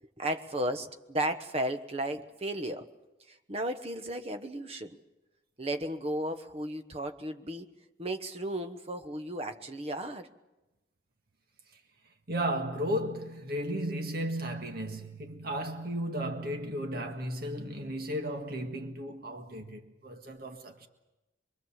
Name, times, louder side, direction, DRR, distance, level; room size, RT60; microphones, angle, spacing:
voice 1, 0.0-2.9 3.3-5.0 5.6-7.7 8.0-10.3, right 1 dB, 35° right, 1.1 m, -34 dB
voice 2, 12.3-20.9, equal, 55° right, 1.9 m, -34 dB
24.5 x 23.0 x 7.4 m
head